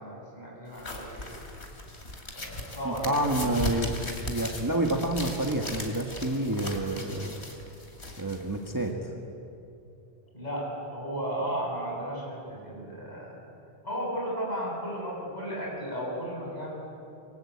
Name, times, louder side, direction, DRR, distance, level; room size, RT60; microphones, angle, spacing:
voice 1, 0.0-1.4 2.3-3.4 4.0-4.1 10.3-13.4 13.8-16.7, right 1 dB, 40° left, -3 dB, 8.3 m, -34 dB
sound 1, 0.7-8.9, left 2 dB, 90° left, 3.1 m, -38 dB
voice 2, 2.8-3.9 4.3-7.3 8.2-9.1, right 1 dB, 20° right, 2 dB, 1.7 m, -28 dB
27.0 x 22.0 x 8.7 m, 2.7 s
omnidirectional pair, 1.1 m